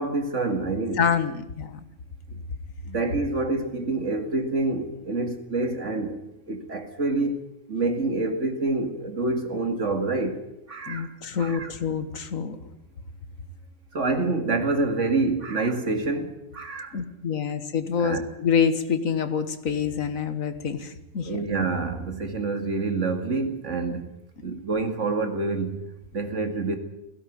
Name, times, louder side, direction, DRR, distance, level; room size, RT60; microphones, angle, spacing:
voice 1, 0.0-1.1 2.3-2.4 2.8-6.2 6.5-10.4 10.7-11.1 11.4-11.7 13.9-17.0 18.0-18.3 21.2-24.1 24.4-26.8, right 3 dB, 65° right, 2.5 m, -27 dB
voice 2, 1.0-1.8 10.9-12.6 16.9-21.3, left 7 dB, 90° left, 1.9 m, -26 dB
17.0 x 16.5 x 9.4 m
omnidirectional pair, 1.3 m